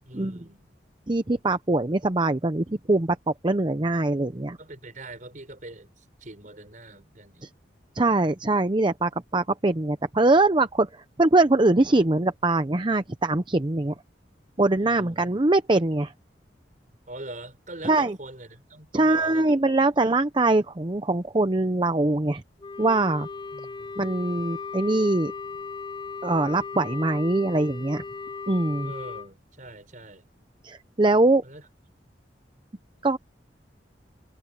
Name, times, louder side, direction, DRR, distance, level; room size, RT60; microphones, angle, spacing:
voice 1, 0.0-0.7 4.6-7.5 14.8-15.1 17.1-19.6 19.9-20.0 23.5-24.0 28.8-30.3 31.4-31.7, right 2 dB, 45° right, 5.0 m, -43 dB
voice 2, 1.1-4.6 7.4-7.5 8.0-13.9 14.6-16.1 17.8-18.2 18.9-22.4 22.8-23.3 24.0-25.3 26.2-28.0 28.5-28.9 30.6-31.4 33.0-33.2, right 2 dB, 25° right, 0.7 m, -22 dB
Wind instrument woodwind instrument, 22.6-29.3, left 4 dB, 25° left, 0.7 m, -37 dB
head